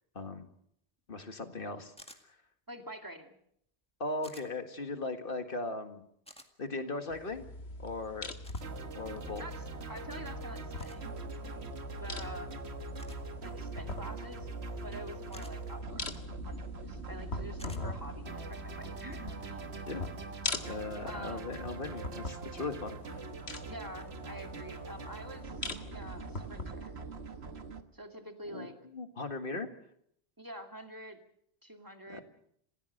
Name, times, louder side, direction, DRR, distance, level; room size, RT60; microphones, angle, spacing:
voice 1, 0.2-0.5 1.1-1.9 2.3-2.4 4.0-6.0 6.6-7.5 7.8-8.3 9.0-9.5 19.9-20.0 20.7-23.2 28.4-28.7 28.9-29.7 32.1-32.2, left 2 dB, 55° left, 7 dB, 2.0 m, -38 dB
sound 1, 2.0-2.2 4.2-4.5 6.3-6.5 8.4-8.7 10.8-11.0 13.0-13.3 15.3-15.5 17.6-17.8, equal, 5° left, 2.0 m, -52 dB
voice 2, 2.7-3.4 9.4-11.1 11.4-11.7 12.0-12.5 13.4-14.5 14.8-16.1 16.4-19.8 21.0-21.5 23.7-25.6 25.9-27.0 27.9-28.7 30.4-31.2 31.6-32.2, right 1 dB, 20° right, 4 dB, 2.4 m, -47 dB
sound 2, 7.1-26.7, left 2 dB, 75° left, 2.0 m, -42 dB
sound 3, 8.6-27.8, right 4 dB, 75° right, 1.6 m, -44 dB
28.5 x 16.0 x 6.6 m, 0.72 s
omnidirectional pair, 1.1 m